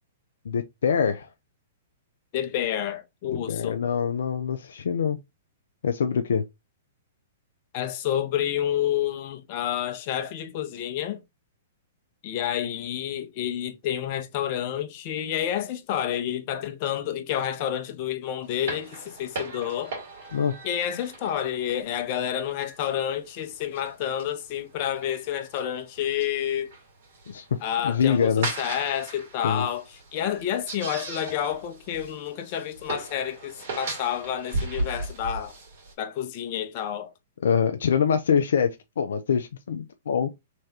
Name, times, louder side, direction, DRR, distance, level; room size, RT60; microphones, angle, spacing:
voice 1, 0.5-1.3 3.3-5.2 5.8-6.5 20.3-20.6 27.3-27.6 27.8-28.5 29.4-29.7 37.4-40.3, left 7 dB, 70° left, 0.4 m, -24 dB
voice 2, 2.3-3.8 7.7-11.2 12.2-20.0 20.6-26.7 27.6-29.8 30.1-35.5 36.0-37.1, left 10 dB, 45° left, 0.7 m, -29 dB
sound 1, 18.4-35.9, right 2 dB, 60° right, 2.1 m, -38 dB
3.4 x 3.2 x 2.7 m
hypercardioid pair, 120°, 0 cm